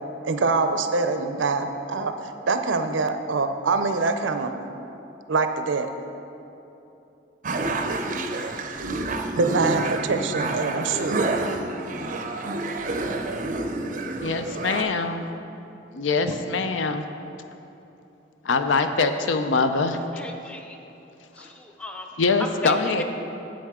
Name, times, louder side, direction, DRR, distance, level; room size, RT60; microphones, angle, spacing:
voice 1, 0.2-4.5 5.3-5.9 9.4-11.4 16.3-16.4, right 4 dB, 90° right, 8 dB, 0.5 m, -24 dB
sound 1, 7.4-14.8, right 2 dB, 40° right, 0.5 m, -28 dB
voice 2, 14.2-15.3 15.9-17.0 18.4-20.0 22.2-23.0, left 4 dB, 85° left, 8 dB, 0.5 m, -23 dB
voice 3, 20.1-20.8 21.3-22.1 22.4-23.0, equal, 5° left, 3 dB, 0.5 m, -36 dB
10.0 x 7.7 x 3.6 m, 3.0 s
head